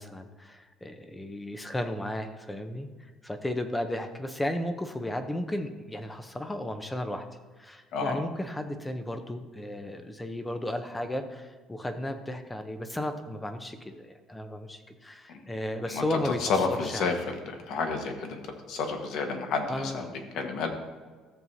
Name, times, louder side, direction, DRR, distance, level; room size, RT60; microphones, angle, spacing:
voice 1, 0.0-7.3 7.6-17.2 19.7-20.1, left 1 dB, 10° left, 8 dB, 0.7 m, -34 dB
voice 2, 15.9-17.3 17.7-18.4 18.7-20.1 20.3-20.7, left 4 dB, 65° left, 4 dB, 1.3 m, -30 dB
14.0 x 7.4 x 2.7 m, 1.5 s
cardioid pair, 140°, 0 cm